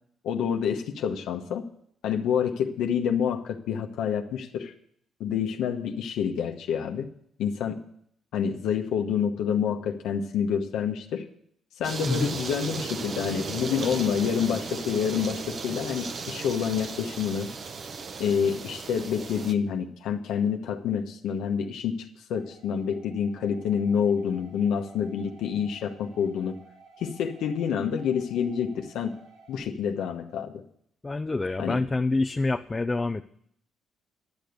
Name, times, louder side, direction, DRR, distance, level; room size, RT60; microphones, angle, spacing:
voice 1, 0.2-1.7 2.0-4.7 5.2-7.1 7.4-7.8 8.3-11.3 11.8-17.5 18.2-26.6 27.0-29.2 29.5-30.6 31.6-31.8, left 7 dB, 85° left, 4 dB, 1.1 m, -28 dB
sound 1, 11.8-19.5, right 5 dB, 50° right, 0.9 m, -36 dB
voice 2, 12.1-12.4 31.0-33.2, left 3 dB, 20° left, 8 dB, 0.5 m, -27 dB
sound 2, 22.3-29.6, right 3 dB, 70° right, 5.0 m, -54 dB
11.5 x 6.9 x 8.0 m, 0.68 s
cardioid pair, 90°, 0 cm